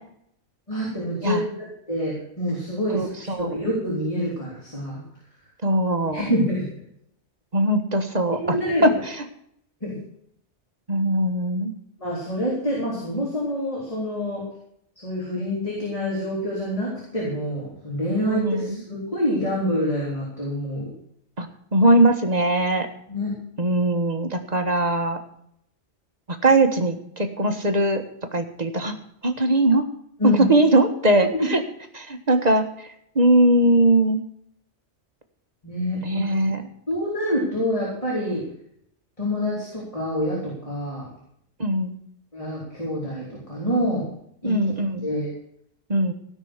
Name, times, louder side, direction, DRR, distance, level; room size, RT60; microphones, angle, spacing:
voice 1, 0.7-5.0 6.1-6.7 8.4-8.9 9.8-10.0 12.0-14.5 15.0-20.9 23.1-23.3 30.2-30.6 31.4-31.5 35.6-36.3 36.9-38.4 39.2-41.1 42.3-44.1 44.4-45.3, equal, 30° left, -5 dB, 4.2 m, -27 dB
voice 2, 2.9-3.5 5.6-6.2 7.5-8.6 8.8-9.2 10.9-11.7 18.3-18.8 21.4-22.9 23.6-25.2 26.4-28.0 28.3-28.9 29.2-29.8 30.2-31.6 31.9-32.6 33.1-34.2 36.0-36.6 41.6-42.0 44.4-45.1 45.9-46.1, right 1 dB, 35° right, 6 dB, 1.6 m, -20 dB
16.5 x 6.2 x 8.1 m, 0.70 s
omnidirectional pair, 1.2 m